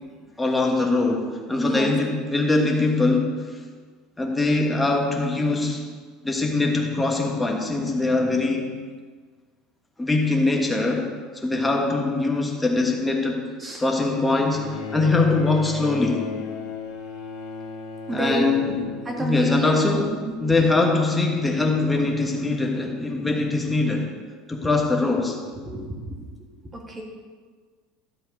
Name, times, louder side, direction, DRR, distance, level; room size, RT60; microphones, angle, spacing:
voice 1, 0.4-3.4 4.2-5.8 6.2-8.7 10.0-13.5 13.8-16.3 18.1-18.9 19.2-24.1 24.5-25.4, left 3 dB, 10° left, 0 dB, 1.5 m, -22 dB
Bowed string instrument, 14.5-20.0 21.1-21.2, left 5 dB, 70° left, 1.7 m, -35 dB
voice 2, 18.1-19.6 19.9-20.1 25.6-25.9 26.7-27.0, right 1 dB, 15° right, 0 dB, 2.0 m, -29 dB
12.5 x 7.8 x 5.4 m, 1.5 s
cardioid pair, 155°, 0 cm